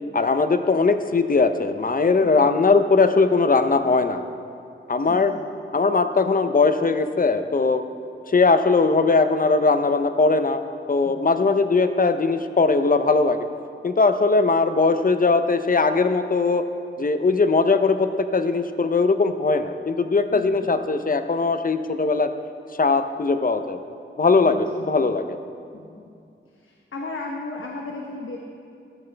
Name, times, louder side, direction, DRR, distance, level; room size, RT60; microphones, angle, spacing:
voice 1, 0.1-4.2 4.9-5.3 5.7-7.8 8.3-10.6 10.9-13.5 13.8-16.6 17.0-22.3 22.8-23.8 24.2-25.4, left 4 dB, 45° left, 9 dB, 0.7 m, -20 dB
voice 2, 2.2-2.6 5.0-5.5 11.0-11.3 20.3-20.9 24.4-24.6 25.1-25.2 25.7-26.1 26.5-28.4, left 3 dB, 75° left, 0 dB, 1.1 m, -36 dB
14.0 x 13.0 x 3.4 m, 2.5 s
cardioid pair, 60°, 21 cm